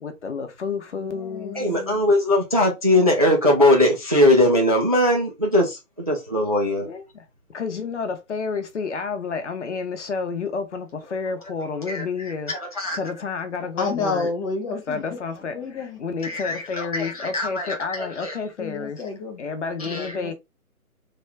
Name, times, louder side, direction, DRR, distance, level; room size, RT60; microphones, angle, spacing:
voice 1, 0.0-1.6 6.8-14.3 14.9-19.0 19.4-20.3, left 5 dB, 50° left, 0.8 m, -30 dB
voice 2, 0.9-2.1 12.8-13.0 13.8-15.2 15.5-16.0 18.6-19.5 19.8-20.3, left 4 dB, 20° left, 1.1 m, -30 dB
voice 3, 1.5-6.9 11.9-12.0 12.5-13.0 16.2-18.4 19.8-20.2, left 1 dB, 25° right, 0.4 m, -20 dB
3.3 x 2.3 x 3.2 m
figure-of-eight pair, 145°, 45 cm